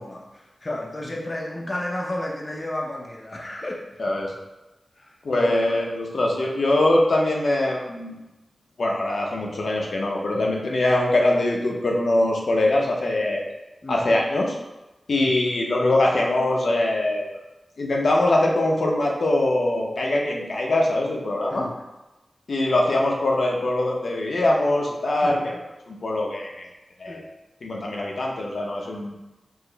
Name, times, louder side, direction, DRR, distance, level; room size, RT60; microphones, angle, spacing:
voice 1, 0.0-3.8 5.0-5.6 10.3-10.5 13.8-14.0 15.2-15.3 21.5-21.8 25.2-25.6 27.1-27.2, left 1 dB, 30° left, -1 dB, 0.5 m, -32 dB
voice 2, 4.0-4.3 5.2-8.2 8.8-13.5 13.9-14.6 15.1-17.3 17.8-21.6 22.5-25.5 25.9-26.7 27.0-27.2 27.6-29.2, left 1 dB, 70° left, -1 dB, 0.7 m, -22 dB
4.8 x 2.1 x 3.8 m, 1.0 s
wide cardioid pair, 110°, 0 cm